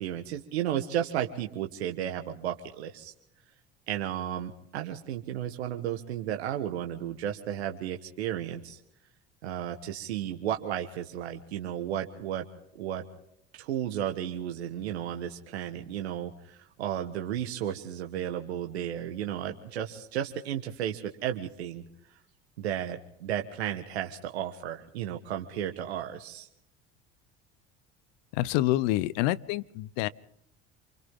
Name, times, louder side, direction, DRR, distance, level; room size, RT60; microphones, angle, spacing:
voice 1, 0.0-3.1 3.9-8.8 9.4-12.4 12.7-13.0 13.5-21.8 22.6-26.5, right 10 dB, 80° right, 4 dB, 1.4 m, -33 dB
voice 2, 28.3-30.1, left 16 dB, 65° left, 19 dB, 0.8 m, -27 dB
28.5 x 24.5 x 3.7 m, 0.76 s
hypercardioid pair, 70°, 32 cm